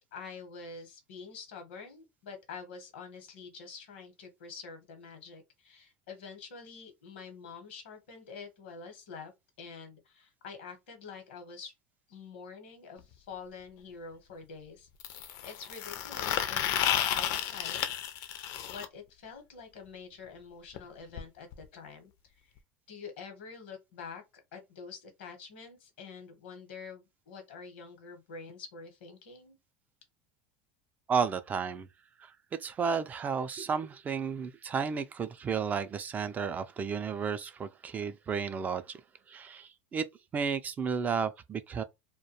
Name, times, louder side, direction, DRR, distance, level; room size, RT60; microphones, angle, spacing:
voice 1, 0.1-9.3 9.6-11.7 12.1-18.3 18.7-22.5 22.9-24.2 24.5-29.6, left 5 dB, 90° left, 0.9 m, -47 dB
sound 1, 13.0-13.1 15.0-18.8 20.8-20.9 21.2-21.3 21.5-21.6 22.6-22.7, left 10 dB, 65° left, 0.4 m, -32 dB
voice 2, 31.1-31.9 32.2-32.3 32.6-39.0 39.3-40.0 40.3-41.8, right 6 dB, 30° right, 0.3 m, -32 dB
2.3 x 2.1 x 2.8 m
supercardioid pair, 105°, 6 cm